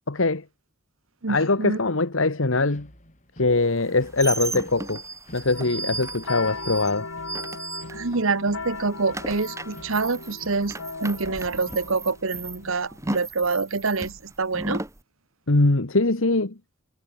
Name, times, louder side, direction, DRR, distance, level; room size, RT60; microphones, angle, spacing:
voice 1, 0.1-0.4 1.3-2.9 3.4-5.0 5.3-7.1 15.5-16.6, left 3 dB, 65° left, 1.4 m, -22 dB
voice 2, 1.2-1.8 7.9-14.8, right 3 dB, 70° right, 1.2 m, -26 dB
sound 1, 2.7-12.7, equal, 35° left, 6.6 m, -51 dB
sound 2, 3.7-8.3 8.6-15.0, right 3 dB, 15° right, 1.6 m, -35 dB
sound 3, 5.5-13.0, left 4 dB, 85° left, 3.5 m, -38 dB
head